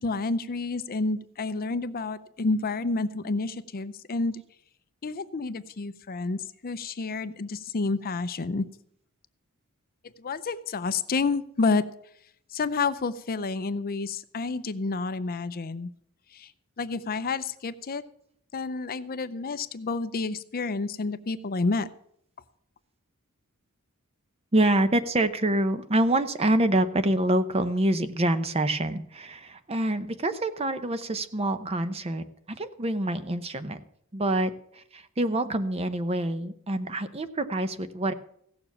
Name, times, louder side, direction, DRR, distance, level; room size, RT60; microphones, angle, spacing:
voice 1, 0.0-4.4 5.0-8.7 10.2-11.8 12.5-15.9 16.3-16.5 16.8-18.0 18.5-21.9, left 3 dB, 40° left, 13 dB, 0.6 m, -29 dB
voice 2, 24.5-33.8 34.1-38.1, right 1 dB, 25° right, 11 dB, 0.8 m, -26 dB
16.0 x 6.9 x 7.2 m, 0.71 s
head